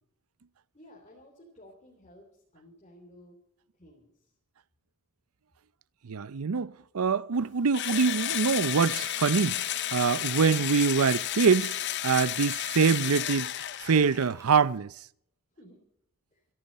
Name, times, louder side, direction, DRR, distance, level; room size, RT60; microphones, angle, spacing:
voice 1, 0.7-3.4 3.7-4.4 15.6-15.8 16.3-16.5, equal, 30° left, 3.4 m, -54 dB
voice 2, 6.0-9.6 9.9-11.8 12.0-13.5 13.8-14.9, right 5 dB, 85° right, 0.6 m, -24 dB
Engine / Drill, 7.7-14.3, left 12 dB, 55° left, 0.6 m, -32 dB
Bowed string instrument, 8.0-11.7, equal, 10° left, 1.9 m, -55 dB
Clapping / Cheering, 9.4-14.6, right 2 dB, 15° right, 3.7 m, -54 dB
27.0 x 11.5 x 4.2 m
head